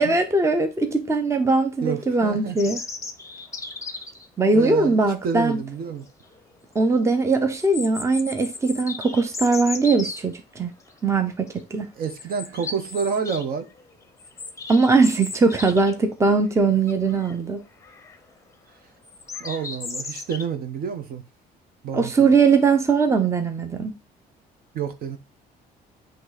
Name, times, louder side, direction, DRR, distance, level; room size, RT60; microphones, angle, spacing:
voice 1, 0.0-2.8 4.4-5.6 6.7-10.7 11.0-11.9 14.7-17.6 21.9-23.9, right 3 dB, 15° right, 0.8 m, -20 dB
voice 2, 1.8-2.6 4.4-6.1 11.9-13.7 19.4-21.2 21.8-22.3 24.7-25.2, right 6 dB, 60° right, 1.1 m, -29 dB
sound 1, 2.6-4.3 5.8-5.9 6.3-6.4 7.5-10.2 10.9-11.2 11.5-11.6 12.1-13.4 13.8-16.1 16.4-16.5 16.9-17.3 17.8-18.2 19.0-20.4, left 4 dB, 20° left, 0.8 m, -35 dB
7.7 x 3.2 x 4.1 m
cardioid pair, 110°, 17 cm